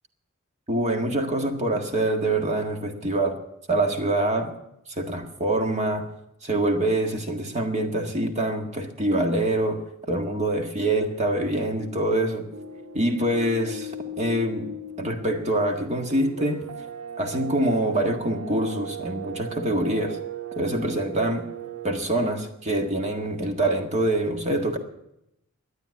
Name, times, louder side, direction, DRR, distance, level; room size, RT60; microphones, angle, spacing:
voice 1, 0.7-3.4 3.7-4.5 5.0-6.1 6.4-9.8 10.1-12.5 12.9-13.9 14.2-14.7 15.0-16.6 17.2-20.2 20.6-21.5 21.8-24.8, right 1 dB, 35° right, 4 dB, 1.7 m, -25 dB
sound 1, 12.5-21.9, right 3 dB, 80° right, 1.4 m, -37 dB
12.0 x 9.7 x 9.5 m, 0.84 s
head